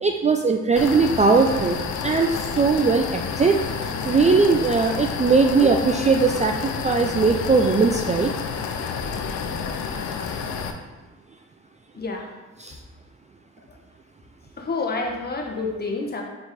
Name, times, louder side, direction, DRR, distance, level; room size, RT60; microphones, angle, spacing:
voice 1, 0.0-3.6 4.0-8.3 12.6-12.8, right 4 dB, 25° right, 4 dB, 0.4 m, -19 dB
sound 1, 0.8-10.7, left 6 dB, 70° left, 0.7 m, -29 dB
voice 2, 11.9-12.3 13.7-13.8 14.6-16.2, left 3 dB, 30° left, 1 dB, 1.2 m, -28 dB
5.3 x 4.5 x 4.2 m, 1.2 s
cardioid pair, 90°, 30 cm